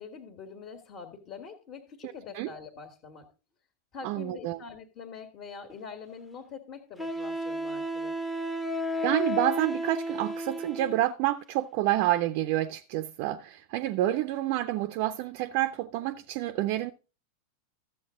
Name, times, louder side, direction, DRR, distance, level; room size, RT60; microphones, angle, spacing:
voice 1, 0.0-3.3 3.9-8.2, left 5 dB, 35° left, 1.7 m, -44 dB
voice 2, 2.0-2.5 4.0-4.6 9.0-16.9, right 14 dB, 45° right, 0.6 m, -28 dB
Wind instrument woodwind instrument, 5.7-5.8 7.0-11.1, equal, 5° left, 0.9 m, -32 dB
14.0 x 7.7 x 3.7 m
figure-of-eight pair, 90°, 0 cm